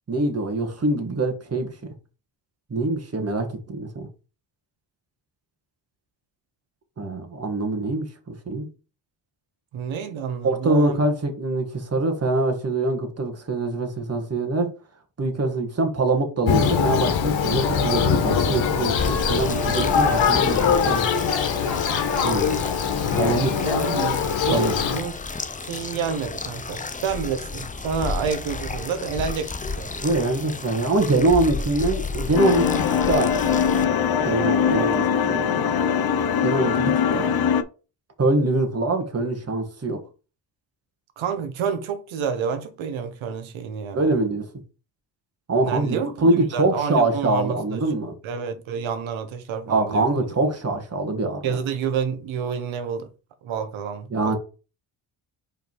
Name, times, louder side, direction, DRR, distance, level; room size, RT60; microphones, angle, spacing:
voice 1, 0.1-1.7 2.7-4.1 7.0-8.7 10.4-14.7 15.2-20.6 20.8-21.1 22.2-22.6 23.1-23.7 24.5-24.7 30.0-33.9 34.2-35.7 36.4-37.3 38.2-40.0 43.9-44.5 45.5-48.1 49.7-51.5 54.1-54.4, right 2 dB, 30° right, 1.6 m, -24 dB
voice 2, 9.7-11.0 23.6-25.2 25.6-29.9 34.6-35.1 41.2-44.0 45.6-47.9 48.2-50.3 51.4-53.1 53.4-54.4, right 6 dB, 80° right, 1.3 m, -29 dB
Thunder, 16.5-25.0, left 6 dB, 70° left, 1.3 m, -22 dB
sound 1, 19.0-33.8, left 3 dB, 15° left, 0.6 m, -32 dB
sound 2, 32.3-37.6, left 7 dB, 50° left, 0.8 m, -22 dB
5.2 x 3.9 x 4.6 m
cardioid pair, 80°, 46 cm